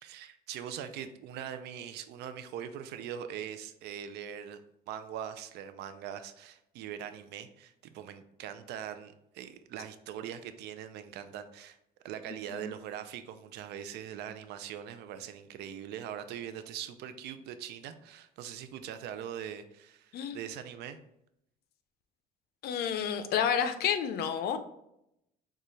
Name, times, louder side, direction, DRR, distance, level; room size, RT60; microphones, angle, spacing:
voice 1, 0.0-4.6 4.9-11.8 12.0-21.0, right 9 dB, 80° right, 10 dB, 0.5 m, -42 dB
voice 2, 22.6-24.6, left 8 dB, 70° left, 9 dB, 0.6 m, -30 dB
6.7 x 2.4 x 3.1 m, 0.80 s
cardioid pair, 110°, 17 cm